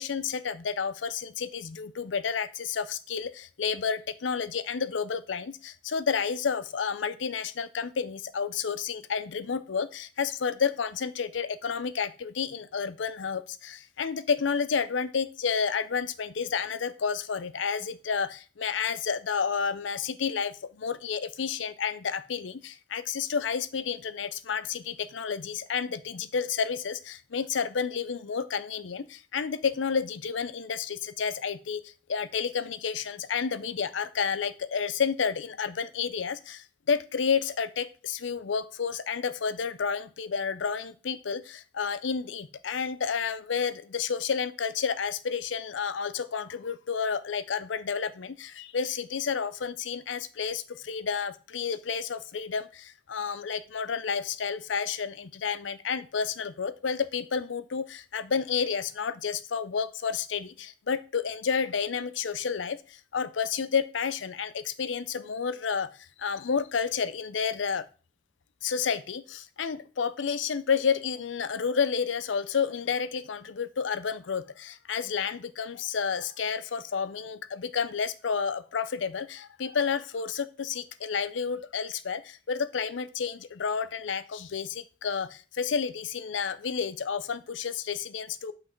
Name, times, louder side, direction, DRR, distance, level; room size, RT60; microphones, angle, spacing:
voice 1, 0.0-65.9 66.2-67.8 68.6-88.5, left 6 dB, 85° left, 14 dB, 0.6 m, -30 dB
5.8 x 5.4 x 4.5 m, 0.34 s
head